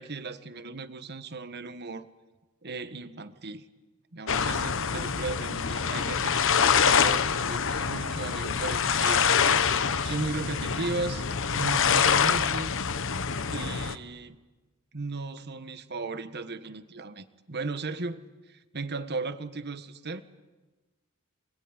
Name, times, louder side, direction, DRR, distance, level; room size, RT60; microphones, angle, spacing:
voice 1, 0.0-2.1 2.6-3.7 4.1-9.3 10.0-11.3 11.5-12.7 13.5-14.3 14.9-20.2, right 3 dB, 50° right, 11 dB, 1.5 m, -36 dB
sound 1, 4.3-14.0, left 6 dB, 60° left, 1.1 m, -25 dB
25.5 x 21.5 x 9.9 m, 1.2 s
head